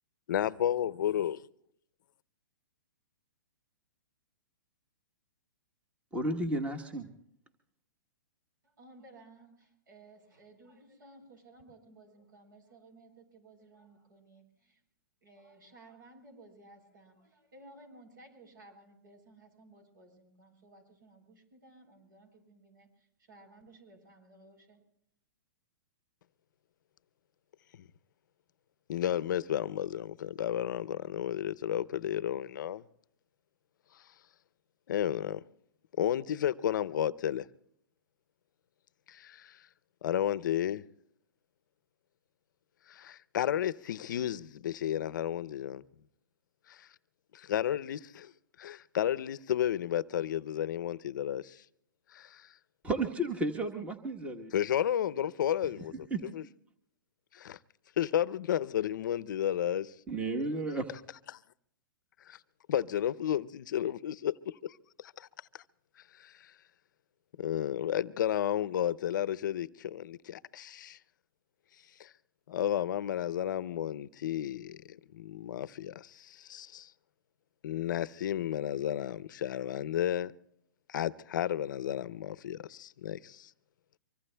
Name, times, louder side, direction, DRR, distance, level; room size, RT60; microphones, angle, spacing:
voice 1, 0.3-1.4 27.8-27.9 28.9-32.8 34.9-35.4 36.0-37.5 39.1-39.6 40.0-40.8 42.9-45.8 46.7-46.9 47.3-48.3 48.6-51.6 52.1-52.5 54.5-56.1 56.3-56.4 57.3-57.6 58.0-59.9 61.3-61.4 62.3-62.4 62.7-65.3 66.2-66.5 67.4-71.0 72.0-72.1 72.5-76.9 77.6-80.4 80.9-83.5, left 10 dB, 65° left, 0.6 m, -32 dB
voice 2, 6.1-7.1 52.8-54.5 56.1-56.2 60.1-60.9, right 2 dB, 10° right, 1.1 m, -32 dB
voice 3, 8.6-14.8 15.2-24.8, right 2 dB, 75° right, 7.5 m, -57 dB
24.5 x 24.0 x 2.2 m
hypercardioid pair, 140°, 11 cm